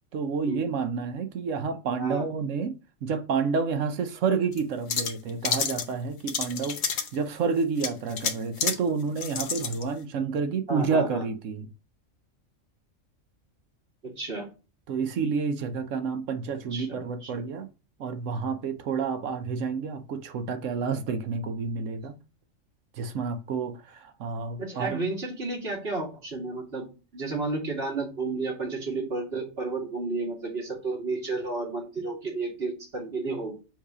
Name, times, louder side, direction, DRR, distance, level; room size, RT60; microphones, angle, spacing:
voice 1, 0.1-2.7 3.0-11.7 14.9-17.7 18.0-22.1 23.0-25.0, right 5 dB, 70° right, 1.0 m, -29 dB
sound 1, 4.5-4.6 4.9-5.8 6.3-7.1 7.8-8.8 9.2-9.8, left 6 dB, 75° left, 1.2 m, -29 dB
voice 2, 10.7-11.2 14.2-14.5 16.7-17.4 24.6-26.9 27.1-33.5, right 3 dB, 50° right, 2.4 m, -32 dB
7.6 x 2.8 x 4.8 m
omnidirectional pair, 1.4 m